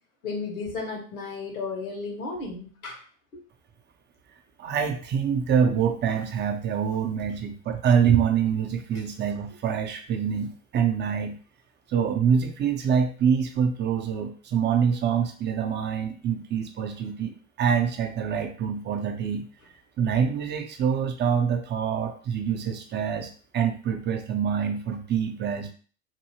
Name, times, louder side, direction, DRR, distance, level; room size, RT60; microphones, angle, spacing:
voice 1, 0.2-3.0 3.3-3.4, left 4 dB, 85° left, 0 dB, 1.2 m, -34 dB
voice 2, 4.6-11.4 11.9-19.4 20.0-25.7, right 7 dB, 25° right, 5 dB, 0.5 m, -25 dB
2.7 x 2.6 x 2.9 m, 0.41 s
hypercardioid pair, 80°, 42 cm